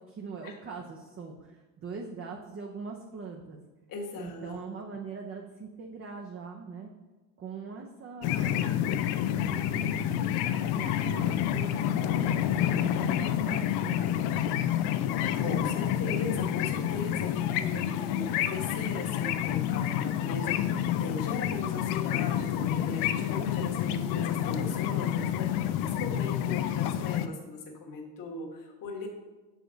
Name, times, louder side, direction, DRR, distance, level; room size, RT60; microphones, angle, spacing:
voice 1, 0.1-3.6 4.2-6.9 7.4-8.7 9.4-14.7, right 5 dB, 35° right, 1 dB, 0.7 m, -42 dB
voice 2, 3.9-4.6 15.3-29.1, left 3 dB, 55° left, 1 dB, 1.4 m, -39 dB
sound 1, 8.2-27.3, left 11 dB, 80° left, 0.5 m, -29 dB
6.3 x 5.0 x 3.9 m, 1.2 s
supercardioid pair, 100°, 38 cm